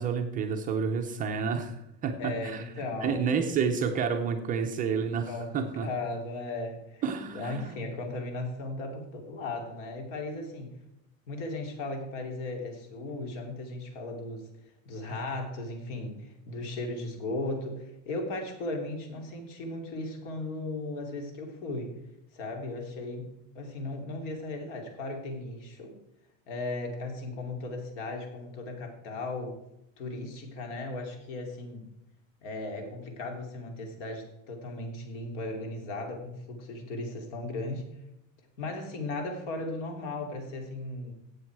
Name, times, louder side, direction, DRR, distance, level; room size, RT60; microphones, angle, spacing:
voice 1, 0.0-2.6 3.0-5.9 7.0-7.7, right 6 dB, 20° right, 4 dB, 0.6 m, -30 dB
voice 2, 2.2-3.2 3.4-3.5 5.3-7.0 7.3-10.7 11.3-14.5 14.8-21.9 22.3-23.3 23.5-26.0 26.5-29.6 30.0-31.9 32.4-37.8 38.6-41.1, left 2 dB, 60° left, 4 dB, 2.9 m, -36 dB
13.5 x 8.4 x 4.7 m, 0.85 s
cardioid pair, 175°, 40 cm